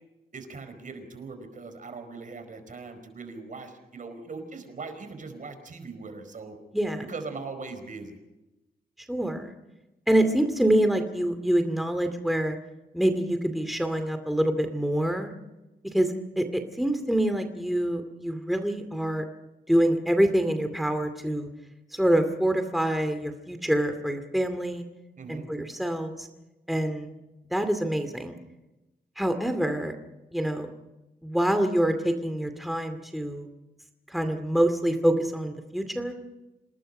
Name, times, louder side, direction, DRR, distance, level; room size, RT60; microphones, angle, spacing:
voice 1, 0.3-6.6 7.1-8.2 25.2-25.5, right 4 dB, 55° right, 8 dB, 4.7 m, -40 dB
voice 2, 9.1-9.5 10.1-12.6 12.9-15.3 15.9-19.2 19.7-21.5 21.9-24.8 25.3-26.3 26.7-27.1 27.5-28.4 29.2-29.9 30.3-30.7 31.2-33.5 34.1-36.1, right 1 dB, ahead, 7 dB, 2.4 m, -26 dB
27.5 x 20.0 x 5.5 m, 0.99 s
cardioid pair, 80°, 16 cm